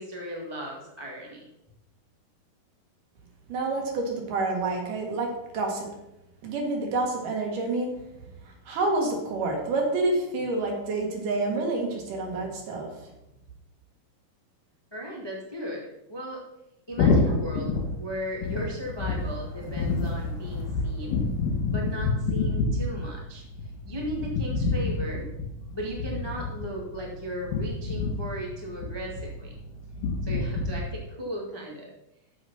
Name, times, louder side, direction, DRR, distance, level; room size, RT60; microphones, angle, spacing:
voice 1, 0.0-1.4 14.9-16.4 16.9-21.2 21.7-23.4 23.8-25.3 25.7-29.5 30.2-31.9, equal, 25° left, -3 dB, 0.5 m, -36 dB
voice 2, 3.5-5.9 6.4-7.9 8.7-12.9, right 2 dB, 70° right, 1 dB, 3.2 m, -28 dB
sound 1, 16.9-30.8, left 3 dB, 70° left, 4.1 m, -29 dB
7.9 x 7.0 x 5.6 m, 0.89 s
omnidirectional pair, 4.1 m